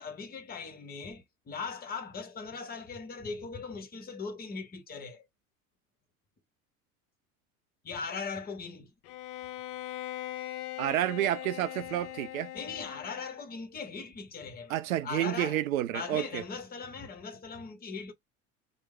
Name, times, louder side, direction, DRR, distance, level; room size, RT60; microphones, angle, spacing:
voice 1, 0.0-5.3 7.8-8.9 11.8-11.9 12.5-14.7 15.0-15.6 15.9-18.1, left 5 dB, 20° left, 0.8 m, -39 dB
Bowed string instrument, 9.0-13.5, left 14 dB, 45° left, 0.5 m, -41 dB
voice 2, 10.8-12.5 14.7-16.4, right 13 dB, 70° right, 0.5 m, -30 dB
3.1 x 2.0 x 3.2 m
figure-of-eight pair, 70°, 42 cm